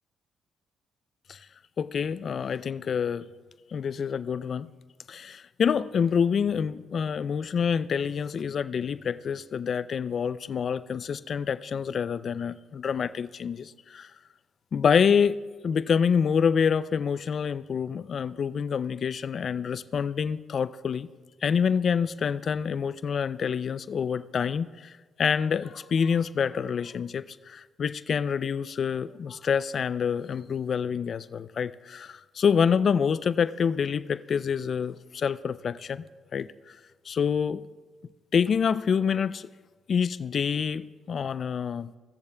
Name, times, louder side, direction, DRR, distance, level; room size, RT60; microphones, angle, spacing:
voice 1, 1.8-3.3 3.7-4.7 5.1-14.1 14.7-21.1 21.4-24.9 25.2-36.0 36.3-36.5 37.1-37.6 38.3-39.5 39.9-41.9, left 7 dB, 50° left, 14 dB, 0.3 m, -27 dB
17.5 x 6.9 x 2.2 m, 1.3 s
cardioid pair, 90°, 0 cm